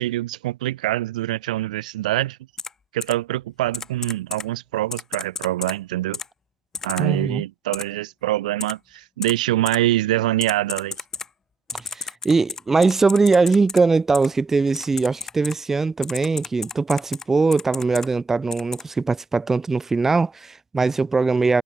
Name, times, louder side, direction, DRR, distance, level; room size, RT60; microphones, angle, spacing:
voice 1, 0.0-2.4 2.9-6.2 6.8-11.0, right 15 dB, 55° right, 4.3 m, -24 dB
Typing, 2.6-2.7 3.0-3.1 3.7-4.4 4.9-5.7 6.1-6.3 6.7-7.0 7.7-7.8 8.6-8.7 9.2-9.3 9.7-9.8 10.4-11.3 11.7-13.8 14.1-14.3 14.7-15.5 16.0-17.2 17.5-18.1 18.5-18.8, left 5 dB, 10° left, 3.8 m, -32 dB
voice 2, 7.0-7.4 11.8-21.6, right 4 dB, 5° right, 0.9 m, -21 dB
supercardioid pair, 175°, 5 cm